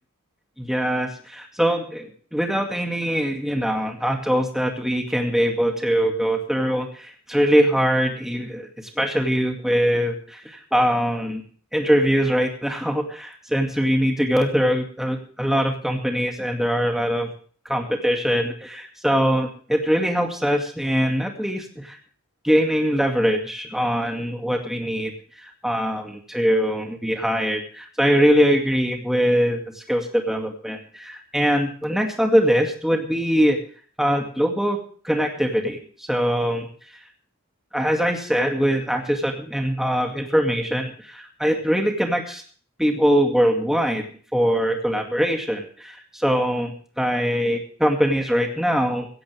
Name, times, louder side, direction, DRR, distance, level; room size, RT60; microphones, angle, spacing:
voice 1, 0.6-8.7 9.0-11.4 11.7-17.3 17.7-22.0 22.4-25.1 25.4-33.6 34.0-34.8 35.0-35.8 36.1-36.7 37.7-42.4 42.8-44.0 44.3-49.1, equal, ahead, 2 dB, 2.3 m, -22 dB
16.0 x 16.0 x 3.5 m, 0.43 s
head